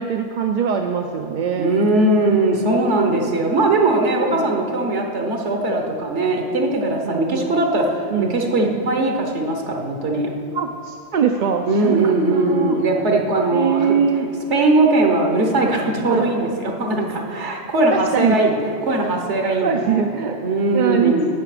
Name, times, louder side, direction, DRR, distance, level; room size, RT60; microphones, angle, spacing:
voice 1, 0.0-1.8 4.3-4.5 7.0-7.5 8.1-8.3 10.5-12.8 13.5-14.3 16.1-16.3 17.9-18.4 19.6-20.4 20.7-21.3, right 7 dB, 55° right, 4 dB, 0.5 m, -22 dB
voice 2, 1.6-10.3 11.7-14.0 14.5-20.0 20.4-21.3, right 2 dB, 90° right, 2 dB, 1.3 m, -20 dB
16.5 x 5.9 x 4.9 m, 2.5 s
omnidirectional pair, 1.1 m